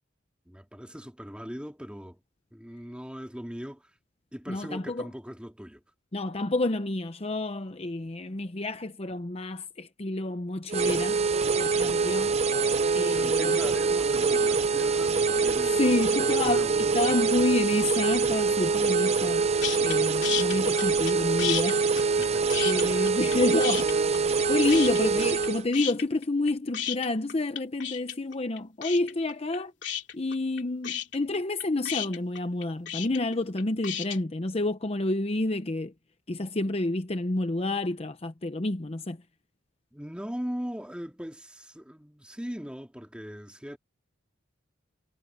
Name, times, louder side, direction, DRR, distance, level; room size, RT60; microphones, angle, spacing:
voice 1, 0.5-2.2 2.5-3.8 4.3-5.8 13.1-17.1 22.2-23.2 39.9-43.8, equal, 5° right, 2.3 m, -40 dB
voice 2, 4.5-5.1 6.1-11.2 11.6-12.4 12.9-13.6 15.6-19.5 19.8-21.8 22.6-23.9 24.5-29.7 30.1-35.9 36.3-39.2, left 2 dB, 30° left, 0.8 m, -29 dB
sound 1, 10.7-25.6, right 4 dB, 35° right, 0.7 m, -25 dB
sound 2, 19.6-20.0 20.2-21.1 21.4-23.4 23.6-24.4 24.7-25.5 25.7-34.2, left 10 dB, 65° left, 3.1 m, -32 dB
head